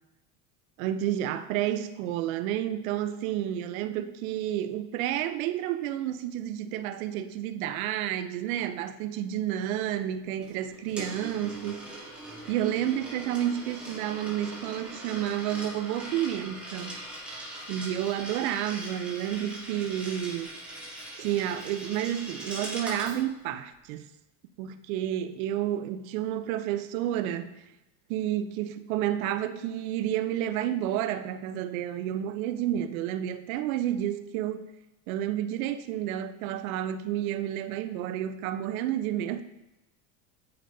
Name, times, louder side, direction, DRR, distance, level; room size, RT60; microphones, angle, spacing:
voice 1, 0.8-11.9 12.5-16.9 17.7-20.5 21.2-24.1 24.6-27.6 28.1-34.6 35.1-39.4, right 11 dB, 80° right, 0.7 m, -30 dB
Coin (dropping), 10.4-23.2, right 1 dB, 5° right, 2.9 m, -41 dB
9.7 x 7.7 x 2.7 m
supercardioid pair, 130°, 41 cm